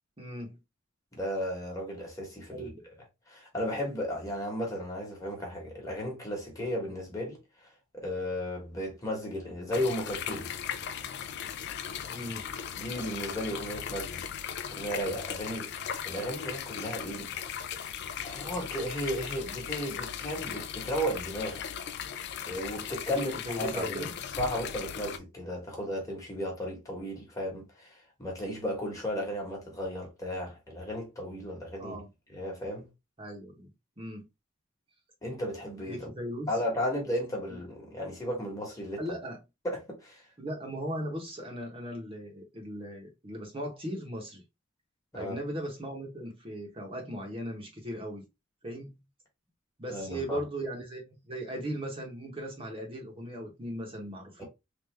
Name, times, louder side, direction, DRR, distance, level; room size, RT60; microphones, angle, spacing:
voice 1, 0.2-0.6 2.5-2.8 12.1-12.5 23.1-24.1 31.8-32.1 33.2-33.7 34.0-34.3 35.9-36.5 37.5-37.6 39.0-39.4 40.4-44.4 45.1-48.2 48.6-49.0 49.8-54.4, equal, 25° right, 0.9 m, -38 dB
voice 2, 1.1-2.7 3.3-7.4 7.9-10.5 12.8-14.3 14.7-17.3 17.6-17.8 18.2-21.7 22.4-24.1 24.4-32.0 32.3-32.9 35.2-36.1 36.5-39.0 39.6-40.2 45.1-45.4 49.9-50.4 54.4-54.5, equal, 15° left, 1.2 m, -34 dB
sound 1, 9.7-25.2, left 8 dB, 50° left, 0.3 m, -38 dB
3.4 x 2.4 x 3.2 m
head